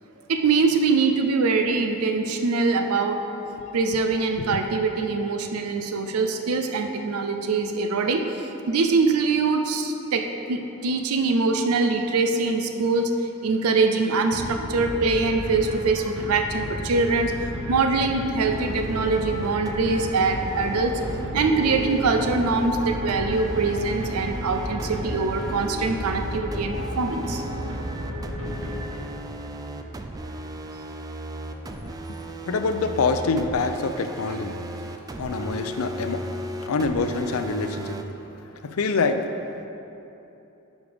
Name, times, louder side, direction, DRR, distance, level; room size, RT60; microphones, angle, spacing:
voice 1, 0.3-3.2 3.7-13.1 13.4-17.3 17.7-21.0 21.3-27.4, right 4 dB, 85° right, 5 dB, 0.5 m, -23 dB
sound 1, 14.3-29.4, equal, 65° right, 1.2 m, -33 dB
sound 2, 18.5-38.0, right 1 dB, 15° right, 0.3 m, -36 dB
voice 2, 32.5-34.6 35.2-36.2 36.6-38.0 38.6-39.3, left 4 dB, 70° left, 8 dB, 0.5 m, -25 dB
9.7 x 5.2 x 3.5 m, 2.9 s
head